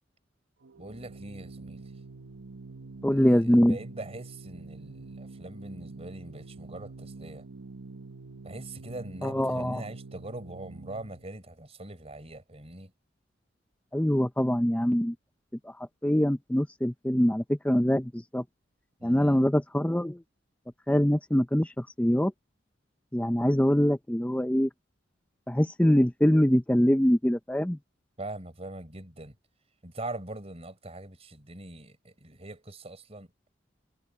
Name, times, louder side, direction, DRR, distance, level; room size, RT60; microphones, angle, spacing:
Organ, 0.6-11.4, right 3 dB, 85° right, 1.2 m, -46 dB
voice 1, 0.8-1.8 3.3-7.4 8.4-12.9 19.0-19.4 28.2-29.3 29.8-33.3, right 2 dB, 30° right, 4.6 m, -42 dB
voice 2, 3.0-3.8 9.2-9.8 13.9-15.2 15.6-18.4 19.0-20.2 20.9-22.3 23.1-24.7 25.5-27.8, equal, 5° left, 0.6 m, -24 dB
head